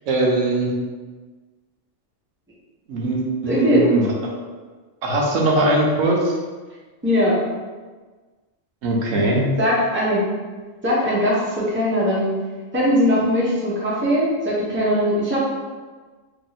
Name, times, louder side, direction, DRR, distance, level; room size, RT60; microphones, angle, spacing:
voice 1, 0.1-0.7 2.9-4.3 5.0-6.3 8.8-9.5, right 2 dB, 90° right, -2 dB, 1.1 m, -20 dB
voice 2, 3.4-3.8 7.0-7.4 9.6-10.2 10.8-12.3 12.7-15.4, equal, 10° right, -7 dB, 0.8 m, -20 dB
2.9 x 2.9 x 4.0 m, 1.4 s
omnidirectional pair, 1.3 m